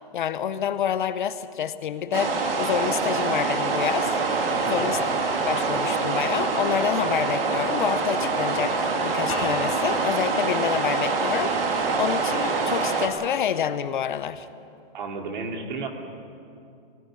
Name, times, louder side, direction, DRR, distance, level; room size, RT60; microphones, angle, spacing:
voice 1, 0.1-4.1 4.7-5.0 5.5-14.5, left 9 dB, 50° left, 13 dB, 0.8 m, -28 dB
sound 1, 2.1-13.1, right 4 dB, 65° right, 2.6 m, -25 dB
voice 2, 4.5-4.9 14.9-15.9, right 4 dB, 50° right, 3 dB, 2.5 m, -33 dB
sound 2, 9.3-12.2, left 3 dB, 20° left, 3.6 m, -39 dB
19.0 x 15.0 x 9.6 m, 2.5 s
hypercardioid pair, 175°, 31 cm